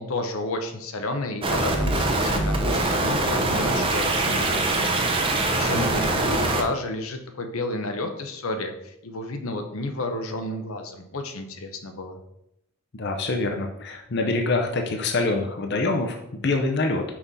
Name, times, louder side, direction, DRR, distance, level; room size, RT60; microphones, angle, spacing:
voice 1, 0.0-12.2, left 2 dB, 80° left, 6 dB, 0.8 m, -31 dB
sound 1, 1.4-6.6, right 2 dB, 25° right, 0.7 m, -23 dB
voice 2, 12.9-17.0, left 3 dB, 50° left, 3 dB, 0.7 m, -25 dB
5.7 x 5.4 x 4.1 m, 0.79 s
head